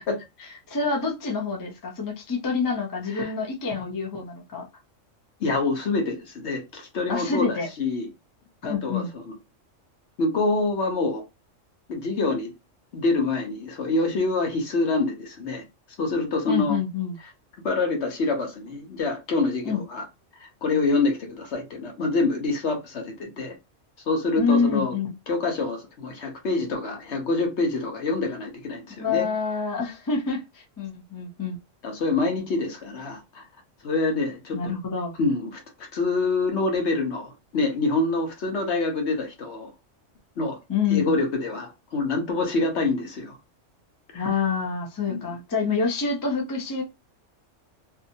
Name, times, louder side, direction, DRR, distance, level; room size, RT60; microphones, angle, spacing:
voice 1, 0.7-4.6 7.1-7.7 8.6-9.1 16.5-17.1 19.6-19.8 24.4-25.1 29.0-31.6 34.5-35.1 40.7-41.2 44.1-46.8, left 5 dB, 25° left, 0.4 m, -27 dB
voice 2, 5.4-8.1 8.6-9.3 10.2-11.2 11.9-12.5 12.9-15.6 16.0-16.8 17.6-20.1 20.4-23.6 24.1-24.9 25.3-29.3 31.8-33.4 33.8-34.7 35.2-39.7 40.4-40.6 40.9-43.4 44.1-44.3 45.1-45.2, left 3 dB, 60° left, 1.1 m, -26 dB
2.7 x 2.3 x 2.6 m
omnidirectional pair, 1.3 m